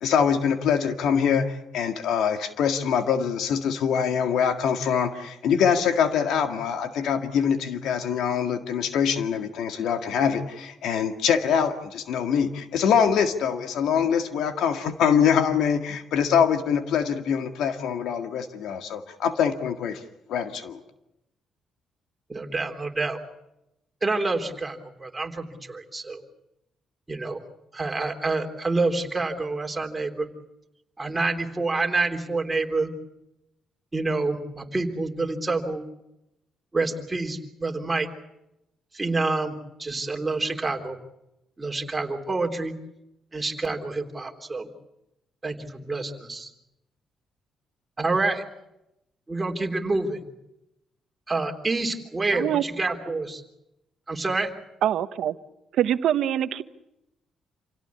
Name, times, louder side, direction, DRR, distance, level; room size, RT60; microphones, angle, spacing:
voice 1, 0.0-20.0 20.3-20.8, left 7 dB, 80° left, 6 dB, 1.9 m, -24 dB
voice 2, 22.3-23.2 24.0-26.2 27.1-27.4 27.7-30.3 31.0-32.9 33.9-35.8 36.7-38.1 38.9-41.0 41.6-42.7 43.3-44.7 45.4-46.5 48.0-48.4 49.3-50.2 51.3-53.4 54.1-54.5, right 3 dB, 20° right, 3 dB, 3.5 m, -27 dB
voice 3, 52.3-52.6 54.8-55.3 55.7-56.6, right 11 dB, 75° right, 12 dB, 1.1 m, -24 dB
28.0 x 17.5 x 8.5 m, 0.90 s
cardioid pair, 90°, 0 cm